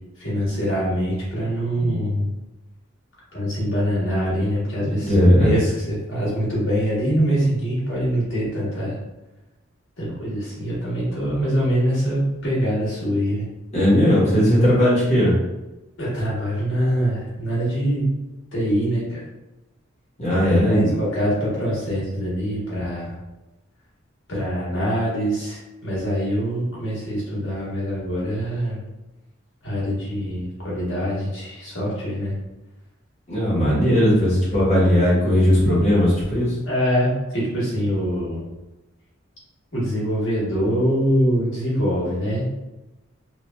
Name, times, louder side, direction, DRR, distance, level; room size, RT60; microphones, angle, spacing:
voice 1, 0.2-2.3 3.3-9.0 10.0-13.4 16.0-18.1 18.5-19.2 20.3-23.1 24.3-28.8 29.6-32.3 33.9-34.0 36.7-38.4 39.7-42.6, equal, 75° left, -7 dB, 1.1 m, -24 dB
voice 2, 4.8-5.5 13.7-15.3 20.2-20.9 33.3-36.6, equal, 35° left, -8 dB, 1.0 m, -17 dB
2.9 x 2.4 x 2.2 m, 1.0 s
head